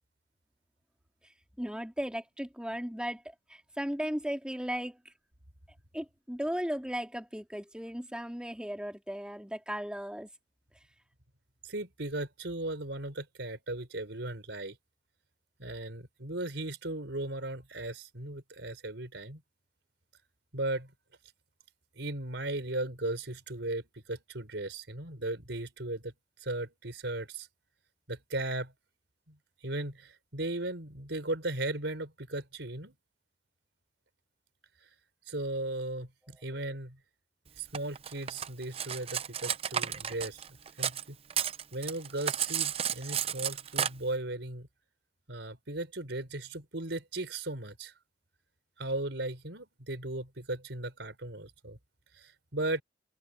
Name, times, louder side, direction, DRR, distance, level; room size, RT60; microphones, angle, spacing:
voice 1, 1.6-5.0 5.9-10.3, equal, 5° right, 3.2 m, -36 dB
voice 2, 11.6-14.8 15.6-19.4 20.5-20.9 22.0-26.1 26.4-27.5 28.1-28.7 29.3-29.4 29.6-32.9 34.8-34.9 35.3-37.0 37.6-40.5 40.8-41.2 41.7-44.7 45.3-47.9 48.8-51.8 52.1-52.8, right 2 dB, 90° right, 4.3 m, -37 dB
Cutlery silverware, 37.7-41.0 41.3-43.9, right 9 dB, 35° right, 0.6 m, -32 dB
open air
head